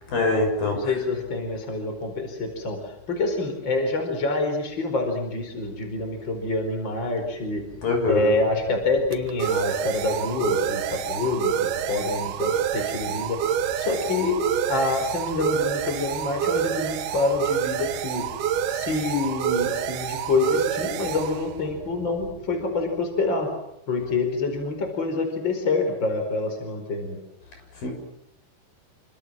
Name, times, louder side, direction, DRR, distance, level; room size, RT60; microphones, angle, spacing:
voice 1, 0.1-0.8 7.8-8.3 27.8-27.9, left 3 dB, 65° left, 3 dB, 8.7 m, -23 dB
voice 2, 0.7-7.6 8.1-11.5 11.9-13.4 13.8-14.4 14.7-18.3 18.7-23.5 23.9-27.2, left 3 dB, 30° left, 5 dB, 5.2 m, -26 dB
sound 1, 7.5-22.9, right 9 dB, 90° right, 3.3 m, -28 dB
28.0 x 25.5 x 7.7 m, 0.77 s
omnidirectional pair, 4.3 m